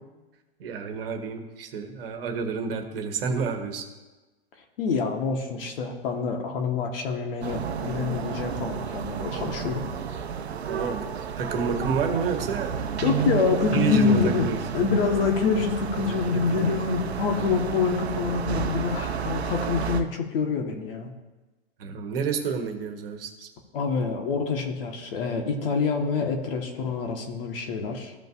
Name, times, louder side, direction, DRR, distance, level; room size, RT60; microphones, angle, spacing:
voice 1, 0.6-3.9 10.7-11.1 11.4-12.8 13.7-14.6 21.8-23.5, right 5 dB, 60° right, 6 dB, 1.4 m, -29 dB
voice 2, 4.8-9.8 13.0-14.5 14.7-21.1 23.7-28.1, left 5 dB, 60° left, 3 dB, 1.5 m, -26 dB
sound 1, 7.4-20.0, right 7 dB, 85° right, 0.8 m, -31 dB
15.0 x 5.3 x 2.6 m, 1.2 s
hypercardioid pair, 110°, 31 cm